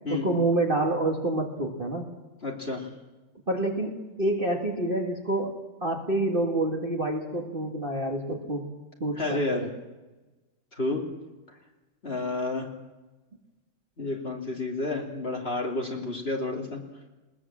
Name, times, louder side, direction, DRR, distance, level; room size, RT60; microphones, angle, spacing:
voice 1, 0.1-2.1 3.5-5.5 5.8-8.7 9.0-9.7, right 2 dB, 25° right, 0 dB, 2.1 m, -27 dB
voice 2, 2.4-2.9 9.2-9.6 10.7-11.0 12.0-12.7 14.0-16.8, left 2 dB, 30° left, 0 dB, 2.9 m, -30 dB
20.5 x 20.0 x 7.5 m, 1.1 s
omnidirectional pair, 2.1 m